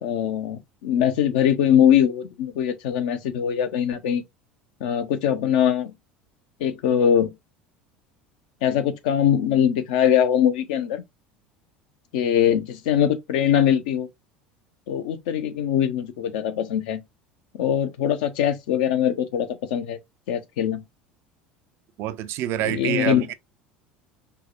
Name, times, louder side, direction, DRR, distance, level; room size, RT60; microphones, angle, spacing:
voice 1, 0.0-4.2 4.8-5.9 6.6-7.3 8.6-11.0 12.1-14.1 14.9-17.0 17.5-20.0 20.3-20.8 22.7-23.2, left 9 dB, 65° left, 0.6 m, -22 dB
voice 2, 22.0-23.3, right 12 dB, 55° right, 0.4 m, -26 dB
4.6 x 2.1 x 2.4 m
hypercardioid pair, 70°, 5 cm